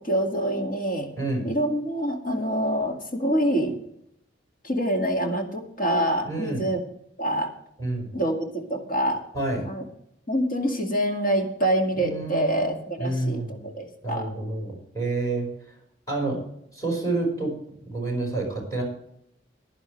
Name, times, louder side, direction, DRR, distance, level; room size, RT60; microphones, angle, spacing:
voice 1, 0.0-1.1 1.4-3.8 4.6-6.8 7.2-7.5 8.1-9.2 9.6-9.8 10.3-14.3, right 1 dB, 50° left, 2 dB, 2.1 m, -26 dB
voice 2, 1.2-1.5 6.2-6.7 7.8-8.1 9.3-9.7 12.0-13.7 14.0-15.5 16.1-16.4 16.7-17.5 17.9-18.8, right 2 dB, 20° left, -2 dB, 5.0 m, -29 dB
15.5 x 11.0 x 3.2 m, 0.75 s
head